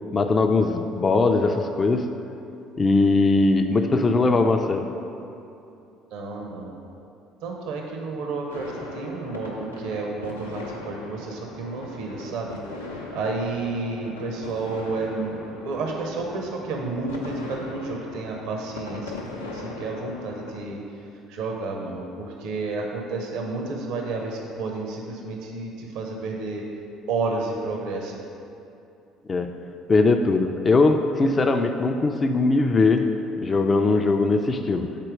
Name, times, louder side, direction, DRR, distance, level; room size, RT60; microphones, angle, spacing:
voice 1, 0.1-2.1 2.8-4.9 29.3-29.5 29.9-33.1 33.4-34.9, left 3 dB, 30° left, 5 dB, 0.4 m, -20 dB
voice 2, 6.1-6.7 7.4-12.6 12.9-19.2 19.5-26.6 27.1-28.2, right 3 dB, 60° right, 1 dB, 0.7 m, -31 dB
sound 1, 8.5-20.7, left 2 dB, 85° left, 0.6 m, -39 dB
7.5 x 4.4 x 4.9 m, 2.7 s
figure-of-eight pair, 55°, 0 cm